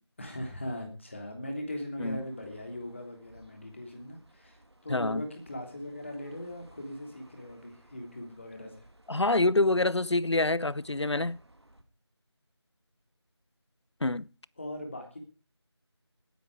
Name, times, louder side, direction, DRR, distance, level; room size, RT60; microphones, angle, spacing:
voice 1, 0.2-8.8 14.6-15.2, left 1 dB, 25° left, 3.2 m, -39 dB
sound 1, 2.0-11.8, right 1 dB, 70° right, 2.8 m, -59 dB
voice 2, 4.9-5.2 9.1-11.4 14.0-14.3, left 2 dB, 75° left, 0.7 m, -26 dB
18.5 x 10.5 x 4.8 m
figure-of-eight pair, 170°, 14 cm